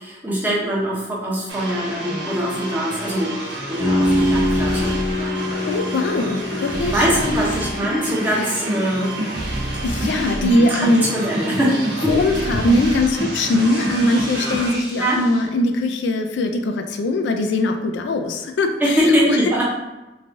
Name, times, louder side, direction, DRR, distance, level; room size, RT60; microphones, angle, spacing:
voice 1, 0.0-5.4 6.9-9.1 10.3-12.2 15.0-15.2 18.8-19.6, equal, 10° right, -6 dB, 0.6 m, -22 dB
sound 1, 1.5-15.4, right 1 dB, 85° right, 0.8 m, -27 dB
sound 2, 3.8-9.6, left 1 dB, 40° left, 0.8 m, -25 dB
voice 2, 5.5-7.4 8.4-8.5 9.8-11.1 12.1-19.4, left 1 dB, 85° left, 6 dB, 0.3 m, -21 dB
3.1 x 2.3 x 2.5 m, 1.1 s
head